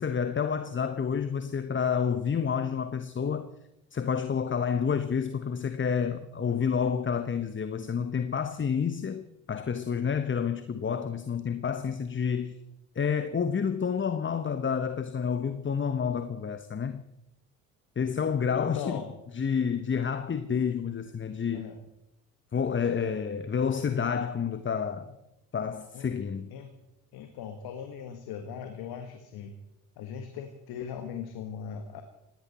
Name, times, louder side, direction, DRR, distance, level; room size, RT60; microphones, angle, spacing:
voice 1, 0.0-3.5 3.9-12.6 12.9-17.0 18.0-19.0 19.3-21.7 22.5-25.1 25.5-26.5, left 6 dB, 30° left, 1.1 m, -29 dB
voice 2, 18.5-19.1 21.5-21.8 25.9-26.1 26.5-26.7 27.1-29.5 30.0-32.0, left 7 dB, 65° left, 1.7 m, -39 dB
20.0 x 17.0 x 4.3 m
hypercardioid pair, 50°, 40 cm